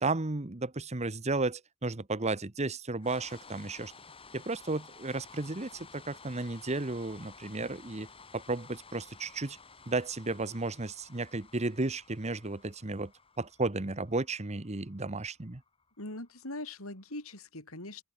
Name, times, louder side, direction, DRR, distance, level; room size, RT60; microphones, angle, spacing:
voice 1, 0.0-3.9 4.3-8.1 8.3-9.6 9.9-13.1 13.4-15.6, right 3 dB, 30° right, 1.2 m, -33 dB
sound 1, 3.0-17.1, left 4 dB, 25° left, 5.7 m, -54 dB
voice 2, 16.0-18.0, left 2 dB, 70° left, 7.7 m, -41 dB
open air
head